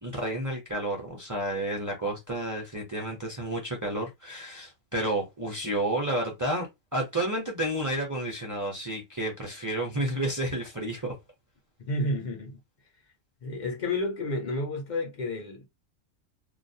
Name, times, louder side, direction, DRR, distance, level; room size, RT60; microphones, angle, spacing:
voice 1, 0.0-11.1, right 1 dB, 25° right, 0.4 m, -31 dB
voice 2, 11.8-12.6 13.4-15.7, left 2 dB, 55° left, 0.5 m, -31 dB
2.3 x 2.0 x 2.6 m
omnidirectional pair, 1.3 m